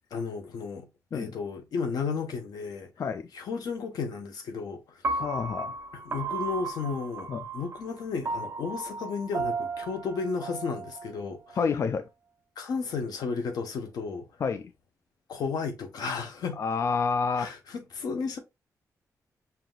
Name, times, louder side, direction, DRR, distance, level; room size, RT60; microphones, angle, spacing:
voice 1, 0.1-0.9 1.1-2.9 3.3-5.2 5.9-11.6 12.6-14.3 15.3-16.6 17.4-18.4, left 5 dB, 90° left, 1.0 m, -33 dB
Piano, 5.0-11.2, right 3 dB, 40° right, 0.5 m, -34 dB
voice 2, 5.2-5.7 7.3-7.4 11.6-12.1 14.4-14.6 16.6-17.5, left 5 dB, 45° left, 0.3 m, -28 dB
5.9 x 2.7 x 2.3 m
wide cardioid pair, 150°, 6 cm